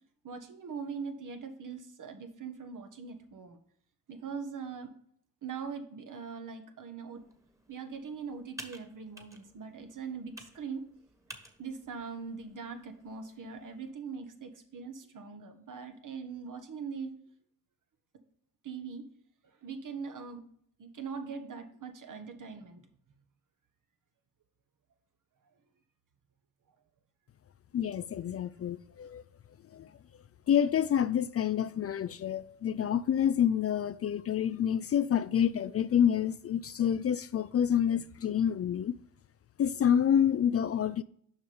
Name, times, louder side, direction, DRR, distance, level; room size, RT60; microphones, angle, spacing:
voice 1, 0.2-3.6 4.1-4.9 5.4-7.3 7.7-10.8 11.6-17.1 18.6-19.0 19.6-20.4 20.8-22.9, right 5 dB, 55° right, 1.3 m, -41 dB
Computer keyboard, 7.1-13.9, right 1 dB, 10° right, 1.6 m, -53 dB
voice 2, 27.7-29.2 29.7-29.9 30.5-38.9 39.6-41.0, left 9 dB, 40° left, 0.4 m, -28 dB
7.1 x 5.4 x 5.0 m
supercardioid pair, 45°, 37 cm